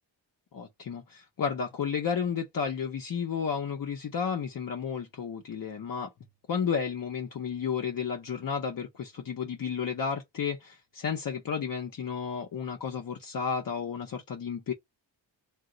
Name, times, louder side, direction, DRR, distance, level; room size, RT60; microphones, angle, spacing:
voice 1, 0.5-6.1 6.5-14.7, left 6 dB, 45° left, 0.6 m, -32 dB
2.7 x 2.1 x 3.8 m
wide cardioid pair, 155°, 46 cm